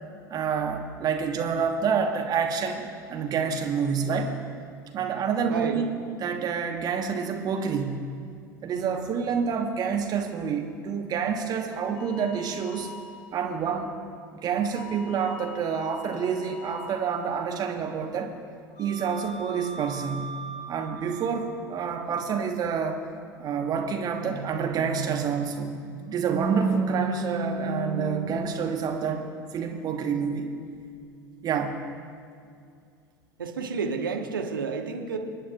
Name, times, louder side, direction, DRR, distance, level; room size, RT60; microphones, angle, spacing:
voice 1, 0.3-4.3 4.9-5.9 6.2-8.1 8.6-12.9 13.3-13.9 14.4-18.3 18.8-20.4 20.7-23.0 23.4-25.8 26.1-29.3 29.5-30.5 31.4-31.8, right 6 dB, 35° right, 4 dB, 1.2 m, -28 dB
voice 2, 5.5-5.8 33.4-35.2, right 5 dB, 75° right, 3 dB, 1.2 m, -30 dB
sound 1, 12.0-13.7 14.7-17.6 18.7-21.6 24.1-29.0 30.6-31.5, right 3 dB, 60° left, 1.7 m, -35 dB
29.5 x 10.0 x 2.4 m, 2.4 s
figure-of-eight pair, 75°, 11 cm